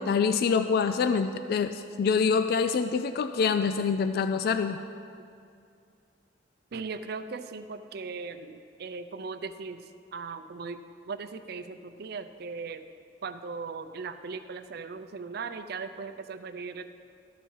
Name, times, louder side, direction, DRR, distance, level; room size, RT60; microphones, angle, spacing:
voice 1, 0.0-4.8, left 5 dB, 55° left, 9 dB, 0.3 m, -26 dB
voice 2, 6.7-9.8 10.1-10.8 11.1-12.9 13.2-16.8, right 4 dB, 60° right, 10 dB, 0.5 m, -38 dB
13.0 x 5.5 x 4.6 m, 2.4 s
head